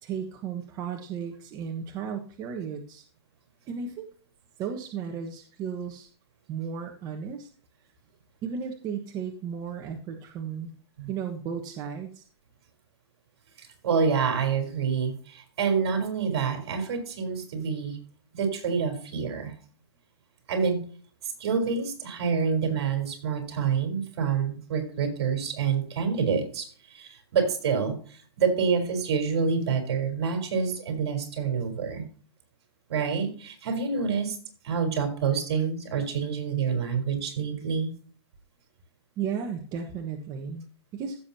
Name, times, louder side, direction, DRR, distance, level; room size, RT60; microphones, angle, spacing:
voice 1, 0.0-3.0 3.7-4.1 4.6-6.1 6.5-7.5 8.4-10.7 11.1-12.3 39.2-40.7 40.9-41.2, right 7 dB, 25° right, 4 dB, 1.3 m, -34 dB
voice 2, 13.6-18.0 18.3-19.5 20.5-20.8 21.2-32.1 32.9-34.4 34.6-38.0, right 6 dB, 65° right, 6 dB, 4.0 m, -27 dB
15.5 x 7.2 x 2.8 m, 0.43 s
hypercardioid pair, 150°, 14 cm